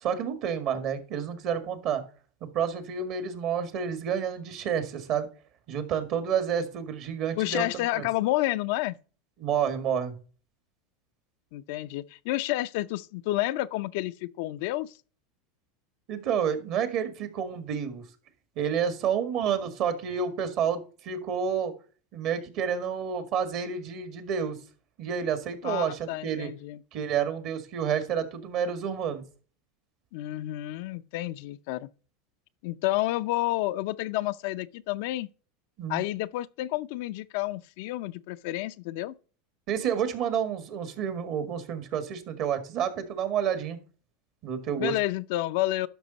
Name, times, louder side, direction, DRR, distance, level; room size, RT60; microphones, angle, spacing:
voice 1, 0.0-2.0 2.5-5.3 5.7-8.1 9.4-10.2 16.1-18.0 18.6-21.7 22.1-24.6 25.0-26.5 26.9-29.2 35.8-36.1 39.7-43.8 44.4-45.0, right 7 dB, 55° right, 1.8 m, -29 dB
voice 2, 7.4-9.0 11.5-14.9 25.6-26.8 30.1-31.9 32.6-35.3 35.9-39.1 44.8-45.9, left 16 dB, 65° left, 0.5 m, -30 dB
11.5 x 5.5 x 4.0 m
hypercardioid pair, 105°, 0 cm